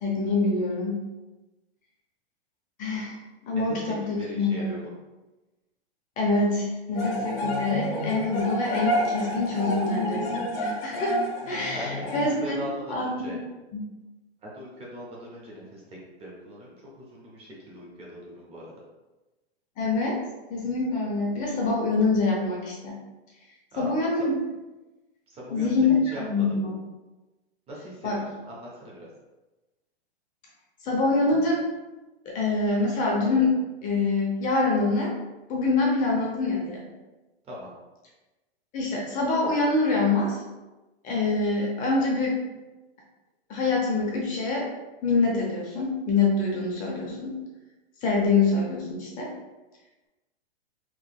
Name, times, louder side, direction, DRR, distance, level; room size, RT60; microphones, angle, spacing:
voice 1, 0.0-1.0 2.8-3.2 3.5-4.8 6.2-12.6 12.9-13.4 13.7-13.8 19.8-20.2 20.5-22.9 23.8-24.3 25.5-26.7 28.0-28.2 30.8-31.7 32.3-33.5 33.8-35.1 35.5-36.8 38.7-40.4 41.0-42.4 43.5-44.7 45.0-47.3 48.0-49.3, left 3 dB, 25° left, -2 dB, 0.6 m, -25 dB
voice 2, 3.7-4.9 11.7-13.4 14.4-18.7 23.7-24.0 25.3-26.5 27.7-29.1 37.4-37.7, equal, 20° right, -4 dB, 0.7 m, -40 dB
sound 1, 6.9-12.3, equal, 55° left, 1.0 m, -29 dB
3.8 x 2.9 x 2.2 m, 1.1 s
hypercardioid pair, 130°, 33 cm